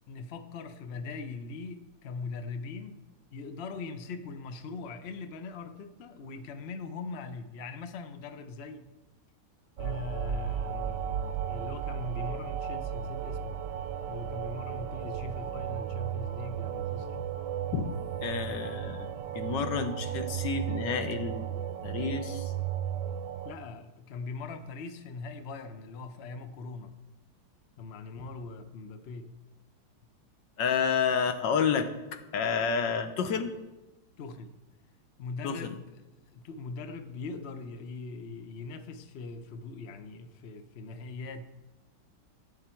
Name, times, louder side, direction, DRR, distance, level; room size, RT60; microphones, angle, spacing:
voice 1, 0.1-3.0 3.3-8.9 9.8-13.5 14.1-17.1 23.4-26.9 27.8-29.3 34.2-34.5 35.2-35.9 36.3-41.4, left 4 dB, 85° left, 8 dB, 0.5 m, -41 dB
sound 1, 9.8-23.5, right 8 dB, 70° right, 1.1 m, -34 dB
voice 2, 18.2-19.1 19.3-21.4 21.8-22.5 30.6-31.9 32.3-33.6 35.4-35.7, left 6 dB, 65° left, 8 dB, 1.5 m, -29 dB
14.5 x 8.9 x 4.5 m, 1.1 s
omnidirectional pair, 2.3 m